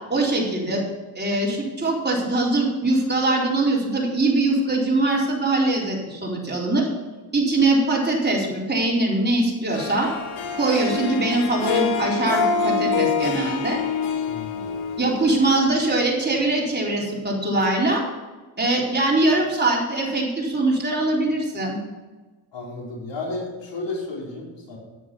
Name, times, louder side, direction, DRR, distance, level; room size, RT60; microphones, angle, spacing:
voice 1, 0.1-0.8 1.1-6.9 7.3-10.1 10.5-13.8 15.0-18.0 18.6-21.8, right 2 dB, 20° right, -3 dB, 4.4 m, -22 dB
Harp, 9.7-16.0, left 5 dB, 75° left, 2.0 m, -26 dB
voice 2, 14.3-14.8 22.5-24.8, left 2 dB, 60° left, -2 dB, 4.5 m, -33 dB
10.5 x 9.9 x 5.5 m, 1.2 s
supercardioid pair, 65°, 48 cm